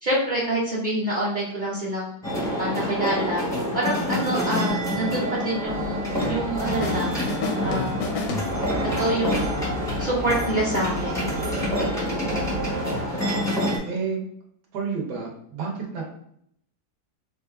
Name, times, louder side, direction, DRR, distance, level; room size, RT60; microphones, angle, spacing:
voice 1, 0.0-2.1 2.6-3.4 3.7-7.1 7.6-8.0 8.8-9.6 10.0-11.2, right 1 dB, 55° right, -6 dB, 0.5 m, -27 dB
sound 1, 2.2-13.8, equal, 5° left, 0.4 m, -27 dB
voice 2, 4.5-4.8 11.9-13.1 13.8-14.2 14.7-16.1, right 5 dB, 85° right, -1 dB, 1.5 m, -32 dB
sound 2, 5.6-13.1, right 1 dB, 70° right, 1.1 m, -33 dB
sound 3, 6.2-7.0 7.3-9.0, left 3 dB, 85° left, 1.2 m, -31 dB
4.2 x 2.3 x 2.3 m, 0.69 s
omnidirectional pair, 1.7 m